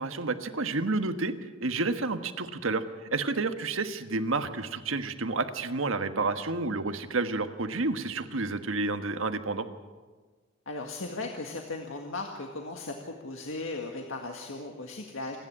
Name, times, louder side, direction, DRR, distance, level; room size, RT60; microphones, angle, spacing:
voice 1, 0.0-1.3 1.6-2.8 3.1-9.7, right 3 dB, 80° right, 9 dB, 1.4 m, -30 dB
voice 2, 10.7-15.4, left 2 dB, 75° left, 2 dB, 1.9 m, -37 dB
27.5 x 10.5 x 9.8 m, 1.4 s
head